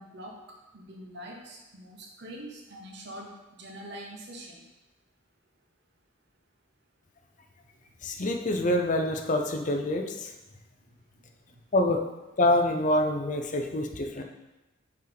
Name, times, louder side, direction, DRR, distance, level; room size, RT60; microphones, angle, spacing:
voice 1, 0.0-4.6, right 1 dB, 60° right, 0 dB, 1.1 m, -44 dB
voice 2, 8.0-10.3 11.7-12.0 12.4-14.2, left 1 dB, 40° left, 4 dB, 0.6 m, -26 dB
5.6 x 4.8 x 4.0 m, 1.0 s
head